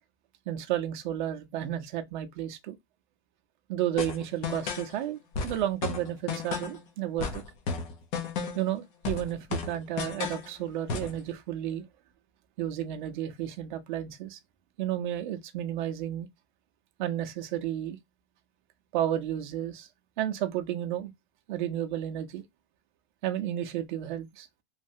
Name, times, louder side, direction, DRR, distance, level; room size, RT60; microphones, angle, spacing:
voice 1, 0.5-2.7 3.7-5.2 5.4-7.4 8.5-11.9 12.6-14.4 14.8-16.3 17.0-18.0 18.9-19.9 20.2-21.1 21.5-22.4 23.2-24.5, right 12 dB, 45° right, 0.6 m, -32 dB
sound 1, 4.0-4.9 5.3-6.8 7.2-8.7 9.0-10.5 10.9-11.2, left 5 dB, 45° left, 0.8 m, -33 dB
3.2 x 2.2 x 2.6 m
supercardioid pair, 165°, 33 cm